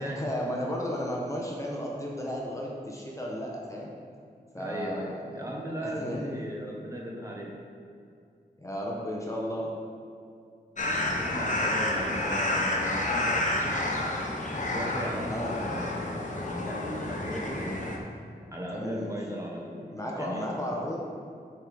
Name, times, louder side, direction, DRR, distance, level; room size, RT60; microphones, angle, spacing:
voice 1, 0.0-3.9 4.5-6.3 8.6-9.7 15.3-15.5 18.7-19.2 19.9-21.0, equal, 20° left, -3 dB, 1.1 m, -34 dB
voice 2, 4.5-7.6 11.0-14.0 14.6-17.8 18.5-19.9 20.2-20.4, equal, 20° right, -2 dB, 1.3 m, -37 dB
sound 1, 10.8-18.0, left 1 dB, 45° left, 1.1 m, -30 dB
9.8 x 4.6 x 3.6 m, 2.4 s
wide cardioid pair, 65°, 17 cm